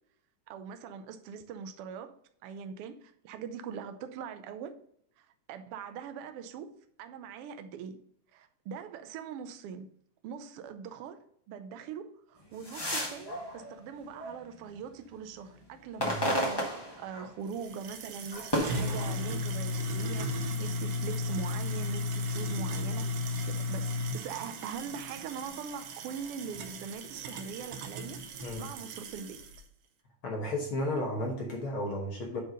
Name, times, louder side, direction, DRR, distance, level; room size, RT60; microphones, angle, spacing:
voice 1, 0.5-2.1 2.4-4.8 5.2-6.7 7.0-8.0 8.3-9.9 10.2-23.1 23.4-28.2 28.6-29.4, right 6 dB, 85° right, 1.2 m, -42 dB
sound 1, 12.4-14.8 15.2-17.6 17.9-19.8 20.4-21.3, equal, 20° left, 0.6 m, -35 dB
sound 2, 17.5-29.6, left 2 dB, 65° right, 1.8 m, -35 dB
voice 2, 30.2-32.4, left 1 dB, 55° left, 1.7 m, -33 dB
8.0 x 4.6 x 5.1 m
omnidirectional pair, 3.5 m